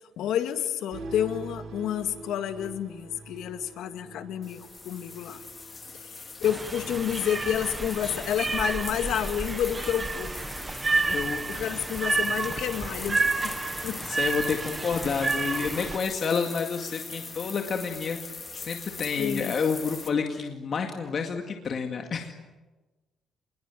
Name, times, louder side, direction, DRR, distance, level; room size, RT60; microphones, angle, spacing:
voice 1, 0.2-5.4 5.9-10.4 11.5-14.0 19.2-19.6, left 10 dB, 90° left, 8 dB, 2.0 m, -30 dB
sound 1, 0.9-7.7, right 2 dB, 65° right, 4.0 m, -45 dB
sound 2, 4.4-20.1, left 4 dB, 25° left, 2.2 m, -41 dB
sound 3, 6.4-16.0, right 3 dB, 20° right, 1.0 m, -30 dB
voice 2, 11.0-11.4 14.0-18.2 18.5-22.3, left 5 dB, 40° left, 3 dB, 2.1 m, -29 dB
27.0 x 21.5 x 9.3 m, 1.2 s
cardioid pair, 170°, 0 cm